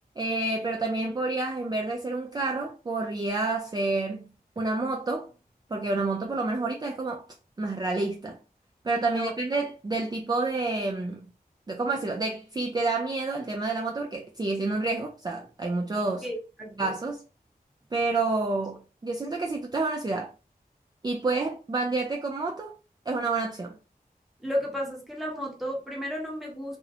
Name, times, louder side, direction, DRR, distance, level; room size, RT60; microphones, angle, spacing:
voice 1, 0.2-4.2 4.6-5.3 5.7-7.2 7.6-8.4 8.8-11.3 11.7-16.3 16.8-17.2 17.9-20.3 21.0-22.7 23.1-23.7, right 3 dB, 25° right, 0.3 m, -29 dB
voice 2, 9.0-9.3 16.2-16.9 24.4-26.8, equal, ahead, 1.0 m, -33 dB
2.5 x 2.0 x 2.6 m
wide cardioid pair, 55°, 16 cm